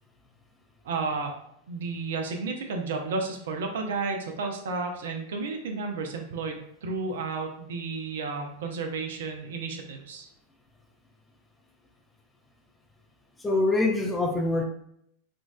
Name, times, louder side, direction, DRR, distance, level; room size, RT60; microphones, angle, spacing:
voice 1, 0.8-1.3 1.7-10.3, right 4 dB, 60° right, 3 dB, 0.5 m, -32 dB
voice 2, 13.4-14.6, left 2 dB, 10° left, 2 dB, 0.5 m, -24 dB
3.7 x 2.4 x 2.3 m, 0.73 s
figure-of-eight pair, 90°, 0 cm